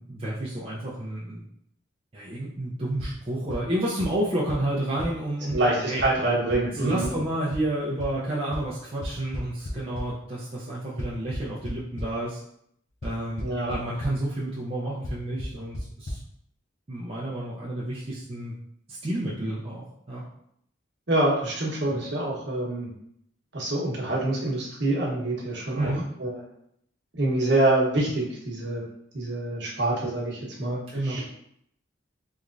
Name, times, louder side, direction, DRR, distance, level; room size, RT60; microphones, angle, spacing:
voice 1, 0.0-1.4 2.1-5.6 5.9-6.0 6.8-12.4 13.0-16.2 16.9-18.5 18.9-20.2 25.7-26.1 30.9-31.2, right 1 dB, 30° right, -7 dB, 0.5 m, -30 dB
sound 1, 3.0-3.1 3.5-3.6 4.0-4.1 4.5-4.6 5.0-5.1 5.5-5.6 6.0-6.1 6.5-6.6 7.0-7.1 7.5-7.6 8.0-8.1 8.5-8.6 9.0-10.0 11.0-12.1 13.0-13.1 13.4-13.8 14.0-14.1 15.0-15.1 15.4-15.5 15.7-15.8 16.1-16.2, left 1 dB, 80° left, 0.7 m, -33 dB
voice 2, 5.5-7.1 13.4-13.7 21.1-22.9 23.5-25.9 26.2-26.4 27.1-28.8 29.1-31.3, right 2 dB, 60° right, -4 dB, 1.1 m, -26 dB
3.5 x 3.1 x 2.5 m, 0.72 s
head